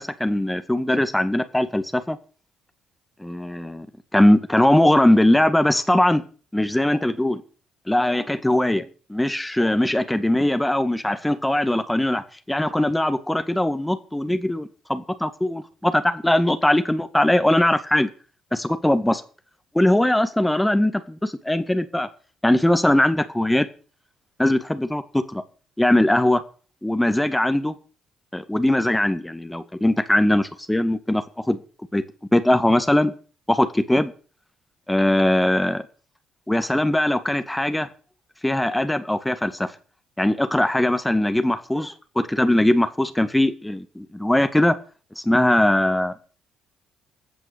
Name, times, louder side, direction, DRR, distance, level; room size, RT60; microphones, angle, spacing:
voice 1, 0.0-2.2 3.2-3.9 4.1-6.2 6.5-7.4 7.9-18.1 18.5-19.2 19.7-22.1 22.4-23.7 24.4-25.4 25.8-26.4 26.8-27.7 28.3-31.6 31.9-32.0 32.3-33.1 33.5-34.1 34.9-35.8 36.5-37.9 38.4-39.7 40.2-44.7 45.2-46.1, left 1 dB, 10° left, 10 dB, 2.0 m, -20 dB
16.0 x 5.9 x 8.1 m, 0.39 s
hypercardioid pair, 50°, 0 cm